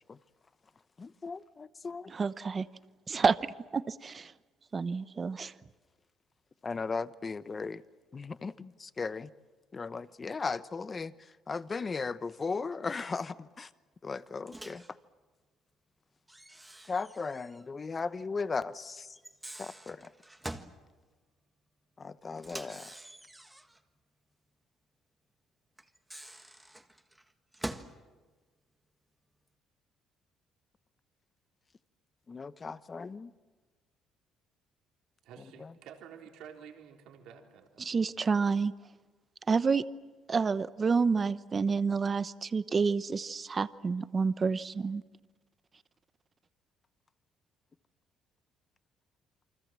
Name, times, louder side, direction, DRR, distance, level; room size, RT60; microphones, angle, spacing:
voice 1, 1.0-2.1 6.6-7.8 8.1-9.3 9.7-11.1 11.5-13.7 14.0-14.8 16.9-19.1 19.6-20.1 22.0-22.9 32.3-33.3, left 4 dB, 30° left, 0.9 m, -36 dB
voice 2, 2.1-2.7 3.1-3.4 3.7-4.3 4.7-5.5 37.8-38.7 39.5-39.8 40.3-45.0, right 5 dB, 30° right, 0.9 m, -29 dB
Microwave oven, 14.5-14.9 16.3-17.7 17.9-18.0 19.1-20.8 22.4-23.8 25.8-28.0, right 1 dB, 5° right, 1.6 m, -45 dB
voice 3, 35.2-38.1, right 8 dB, 80° right, 3.7 m, -51 dB
28.5 x 24.5 x 7.5 m
cardioid pair, 115°, 0 cm